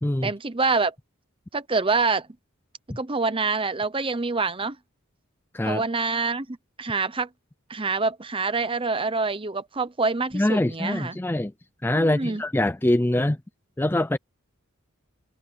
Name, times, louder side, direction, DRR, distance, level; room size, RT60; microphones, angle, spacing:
voice 1, 0.2-0.9 1.5-2.3 3.0-4.8 5.6-7.3 7.7-11.2 11.9-12.4, right 4 dB, 25° right, 0.9 m, -26 dB
voice 2, 10.3-11.5 11.8-13.4 13.8-14.2, left 1 dB, 10° left, 0.4 m, -23 dB
head